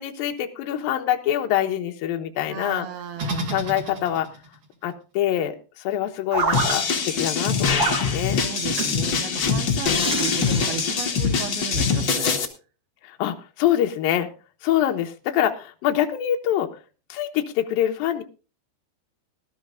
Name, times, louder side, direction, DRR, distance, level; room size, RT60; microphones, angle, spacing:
voice 1, 0.0-2.9 3.5-4.3 4.8-5.6 5.8-8.4 13.0-14.3 14.6-16.7 17.1-18.2, left 11 dB, 70° left, 2.7 m, -25 dB
voice 2, 2.5-3.5 8.4-12.4, right 9 dB, 75° right, 3.0 m, -34 dB
sound 1, 3.2-4.4 6.3-6.8 7.8-8.0 8.8-9.0 10.0-10.9, right 3 dB, 40° right, 3.0 m, -27 dB
sound 2, 6.5-12.4, left 6 dB, 50° left, 1.3 m, -23 dB
19.5 x 12.5 x 2.5 m
omnidirectional pair, 4.6 m